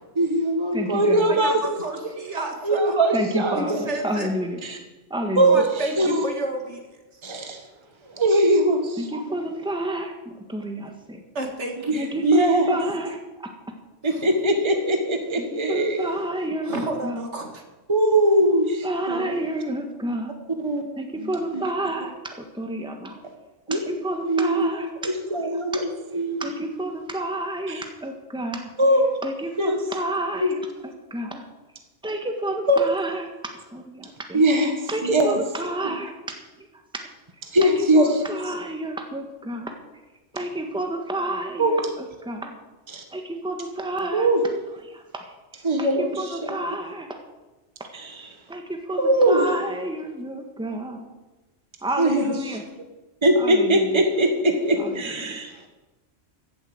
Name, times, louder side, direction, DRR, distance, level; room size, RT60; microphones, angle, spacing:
voice 1, 0.2-1.6 2.6-3.8 4.6-4.8 5.4-5.7 6.0-6.2 7.2-7.6 8.1-9.3 11.9-12.8 14.0-16.1 17.9-19.3 20.6-20.8 21.2-21.6 23.7-23.8 24.3-24.7 25.0-26.5 27.7-27.8 28.8-29.1 29.6-29.8 30.4-30.5 32.7-32.8 34.3-34.7 35.0-35.4 35.8-36.0 37.5-38.2 41.6-41.7 42.9-43.0 44.1-44.4 45.6-46.4 47.9-48.2 49.0-49.5 52.0-52.3 53.2-55.5, right 1 dB, 25° right, 4 dB, 1.5 m, -21 dB
voice 2, 0.7-1.4 3.1-4.6 5.1-5.6 9.0-11.2 12.0-13.5 15.5-17.2 18.8-20.4 21.0-23.2 23.7-24.9 26.4-28.7 29.2-31.4 32.0-33.3 33.7-34.4 34.9-36.1 36.6-36.7 36.9-37.1 37.6-39.7 40.3-42.6 43.1-44.3 44.9-47.1 48.5-51.1 51.8-52.6 53.3-54.0 54.8-55.4, right 1 dB, 5° right, 4 dB, 1.5 m, -30 dB
voice 3, 1.3-2.9 3.5-4.3 5.4-6.9 7.4-7.6 11.3-12.1 14.1-14.3 16.7-17.6, right 2 dB, 70° right, 3 dB, 2.3 m, -31 dB
15.0 x 8.0 x 7.9 m, 1.1 s
omnidirectional pair, 1.2 m